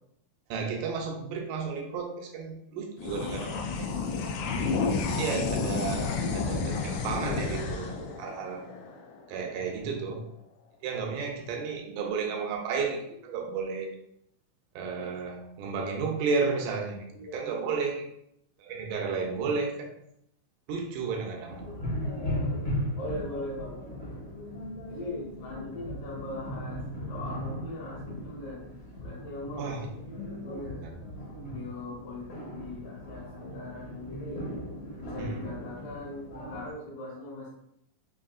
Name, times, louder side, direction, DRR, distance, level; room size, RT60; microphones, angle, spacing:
voice 1, 0.5-3.9 5.1-6.1 6.3-8.6 9.3-10.2 10.8-13.9 14.8-18.0 18.6-20.0 20.7-21.7 29.6-29.9 30.7-30.9 35.2-35.6, right 5 dB, 80° right, 2 dB, 2.1 m, -32 dB
sound 1, 3.0-9.7, left 4 dB, 85° left, 1.7 m, -31 dB
voice 2, 17.1-17.7 23.0-23.8 24.9-29.8 30.4-30.8 31.5-34.4 35.0-37.5, left 2 dB, 70° left, -7 dB, 2.3 m, -40 dB
sound 2, 21.5-36.7, equal, 55° left, 1.3 m, -37 dB
5.4 x 2.6 x 2.4 m, 0.75 s
omnidirectional pair, 3.9 m